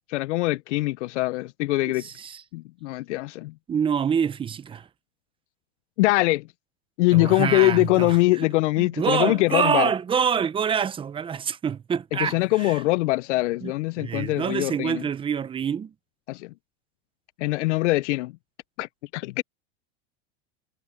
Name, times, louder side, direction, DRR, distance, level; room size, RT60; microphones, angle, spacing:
voice 1, 0.1-2.0 2.5-3.5 6.0-6.4 7.0-9.9 12.2-15.0 16.3-16.5 17.4-18.3 18.8-19.4, left 20 dB, 85° left, 0.5 m, -23 dB
voice 2, 2.0-2.4 3.7-4.9 7.1-8.5 8.8-12.8 13.6-13.7 14.0-15.9, right 7 dB, 15° right, 0.7 m, -26 dB
supercardioid pair, 145°, 35 cm